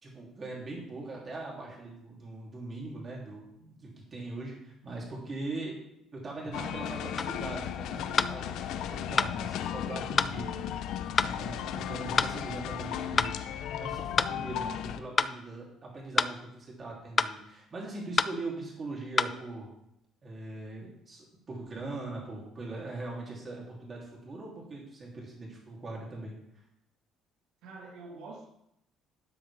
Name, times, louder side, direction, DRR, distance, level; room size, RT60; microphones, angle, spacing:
voice 1, 0.0-5.8 6.1-10.9 11.2-13.4 13.7-19.7 20.2-26.3, right 2 dB, 25° right, -3 dB, 3.1 m, -41 dB
sound 1, 6.5-15.0, left 10 dB, 65° left, 0.6 m, -35 dB
sound 2, 7.2-7.4 8.2-8.4 9.2-9.3 10.2-10.4 11.2-11.4 12.2-12.4 13.2-13.4 14.2-14.4 15.2-15.4 16.2-16.4 17.2-17.4 18.2-18.4 19.2-19.4, left 4 dB, 20° left, 0.3 m, -26 dB
voice 2, 8.6-9.2 27.6-28.5, right 3 dB, 70° right, 0 dB, 1.7 m, -47 dB
12.0 x 9.8 x 3.5 m, 0.79 s
cardioid pair, 170°, 0 cm